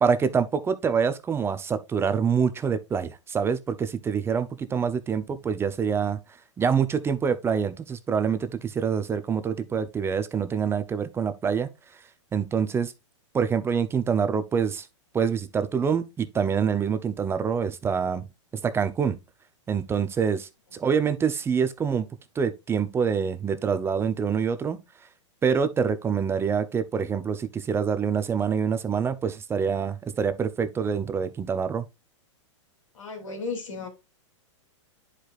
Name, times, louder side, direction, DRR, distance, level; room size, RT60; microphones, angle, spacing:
voice 1, 0.0-6.2 6.6-11.7 12.3-12.9 13.3-14.9 15.1-18.3 18.6-19.2 19.7-22.1 22.4-24.8 25.4-31.9, right 6 dB, 15° right, 0.6 m, -26 dB
voice 2, 32.9-33.9, left 4 dB, 90° left, 2.9 m, -34 dB
10.0 x 4.9 x 2.4 m
hypercardioid pair, 130°, 16 cm